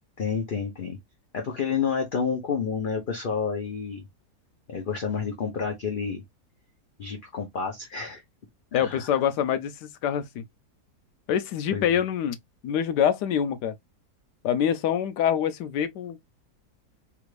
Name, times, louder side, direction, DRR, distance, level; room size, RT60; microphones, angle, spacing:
voice 1, 0.2-1.0 1.3-4.0 4.7-6.2 7.0-8.2 8.7-9.2 11.7-11.8, left 6 dB, 50° left, 0.6 m, -29 dB
voice 2, 8.7-10.4 11.3-12.4 12.6-13.7 14.4-16.2, left 9 dB, 85° left, 1.2 m, -25 dB
3.4 x 2.5 x 3.1 m
omnidirectional pair, 1.8 m